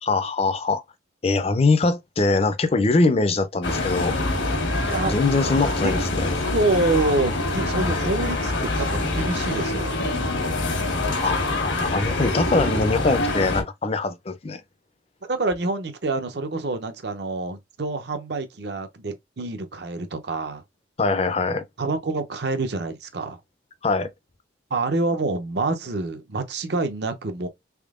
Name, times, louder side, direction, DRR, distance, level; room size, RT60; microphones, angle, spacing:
voice 1, 0.0-0.8 1.2-4.1 5.0-6.3 11.2-14.6 21.0-21.6 23.8-24.1, left 3 dB, 30° left, 0.4 m, -22 dB
sound 1, 3.6-13.6, left 2 dB, 80° left, 1.2 m, -25 dB
voice 2, 6.4-8.9 9.1-9.9 15.2-20.6 21.8-23.4 24.7-27.5, right 2 dB, 60° right, 0.6 m, -26 dB
3.6 x 3.4 x 2.4 m
head